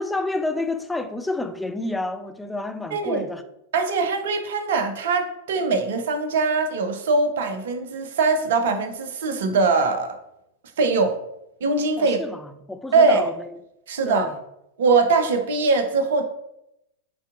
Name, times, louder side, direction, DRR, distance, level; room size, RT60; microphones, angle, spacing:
voice 1, 0.0-3.4 12.0-13.5 14.1-14.4, left 2 dB, 5° left, 0.4 m, -29 dB
voice 2, 2.9-3.3 3.7-10.2 10.8-11.2 11.6-12.2 12.9-13.2 13.9-14.3 14.8-16.2, right 4 dB, 60° right, 0.6 m, -21 dB
6.8 x 2.8 x 2.5 m
figure-of-eight pair, 90°, 0 cm